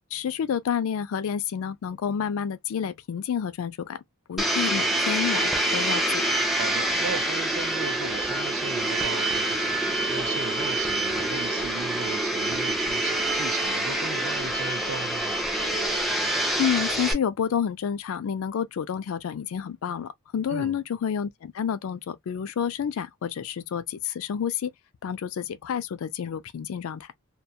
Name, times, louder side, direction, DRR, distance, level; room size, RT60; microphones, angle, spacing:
voice 1, 0.1-4.0 4.3-6.2 16.6-24.7 25.0-27.1, left 8 dB, 75° left, 0.3 m, -29 dB
Domestic sounds home sounds, 4.4-17.1, right 1 dB, ahead, 0.4 m, -26 dB
voice 2, 6.6-15.3 20.5-20.8, right 5 dB, 60° right, 0.4 m, -37 dB
2.2 x 2.2 x 2.7 m
head